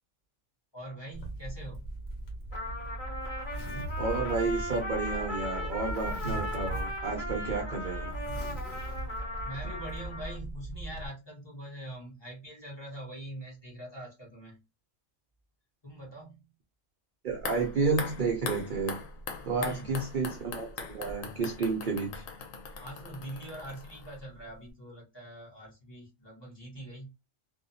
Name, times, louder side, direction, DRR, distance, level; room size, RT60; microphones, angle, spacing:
voice 1, 0.7-1.9 9.4-14.6 15.8-16.5 19.4-20.0 22.8-27.1, right 1 dB, 20° left, 1.0 m, -43 dB
Zipper (clothing), 1.1-11.1, right 1 dB, 55° left, 1.0 m, -38 dB
Trumpet, 2.5-10.4, left 1 dB, 40° left, 1.4 m, -38 dB
voice 2, 4.0-8.3 17.2-19.0 19.5-22.2, right 4 dB, 60° right, 0.5 m, -31 dB
sound 1, 17.3-24.4 24.7-24.8, left 5 dB, 80° left, 1.0 m, -41 dB
2.6 x 2.1 x 2.6 m
omnidirectional pair, 1.3 m